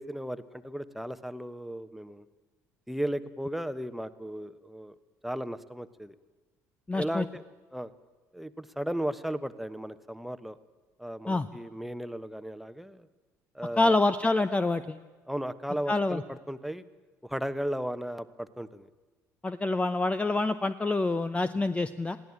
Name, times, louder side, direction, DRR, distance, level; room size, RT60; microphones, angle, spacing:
voice 1, 0.0-2.2 2.9-4.9 5.2-6.1 6.9-7.4 7.7-7.9 8.3-10.6 11.0-13.1 13.5-13.9 15.3-16.8 17.2-18.9, equal, ahead, 13 dB, 1.1 m, -35 dB
voice 2, 6.9-7.2 11.3-11.5 13.8-15.0 15.9-16.2 19.4-22.2, left 2 dB, 15° left, 13 dB, 0.7 m, -26 dB
21.5 x 16.0 x 8.8 m, 1.3 s
figure-of-eight pair, 55°, 8 cm